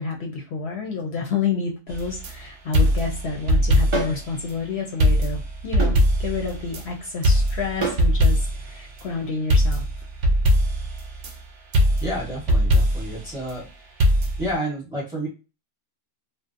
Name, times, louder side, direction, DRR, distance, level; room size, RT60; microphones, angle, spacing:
voice 1, 0.0-8.4 8.6-9.8, left 5 dB, 65° left, 1 dB, 0.8 m, -29 dB
sound 1, 1.9-2.3 2.7-4.2 4.5-4.6 5.0-6.8 7.2-8.7 9.5-11.3 11.7-13.2 14.0-14.5, equal, 75° right, 0.9 m, -20 dB
sound 2, 3.9-4.2 5.8-6.0 7.8-8.1, right 3 dB, 35° right, 0.5 m, -26 dB
voice 2, 12.0-13.7 14.4-15.3, equal, 5° right, -2 dB, 0.8 m, -30 dB
2.7 x 2.0 x 2.4 m, 0.30 s
omnidirectional pair, 1.3 m